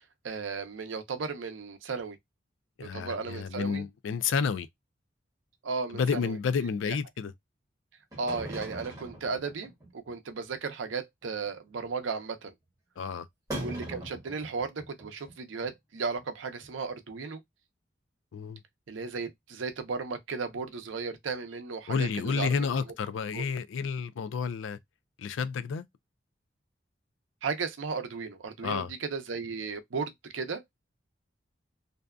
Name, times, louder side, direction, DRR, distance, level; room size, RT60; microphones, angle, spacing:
voice 1, 0.2-2.2 2.8-3.8 5.6-6.4 6.9-7.0 8.2-12.5 13.6-17.4 18.9-22.7 23.3-23.5 27.4-30.6, right 4 dB, 80° right, 0.5 m, -35 dB
voice 2, 2.8-4.7 5.9-7.3 13.0-13.3 18.3-18.6 21.9-24.8 25.2-25.8 28.6-28.9, left 5 dB, 80° left, 0.4 m, -30 dB
sound 1, 8.1-10.1 10.5-10.6 10.8-10.9 11.2-11.5 11.9-12.0 13.5-15.3 15.6-15.7 16.1-16.2 16.6-16.7, right 1 dB, 20° right, 1.1 m, -40 dB
2.6 x 2.2 x 2.3 m
head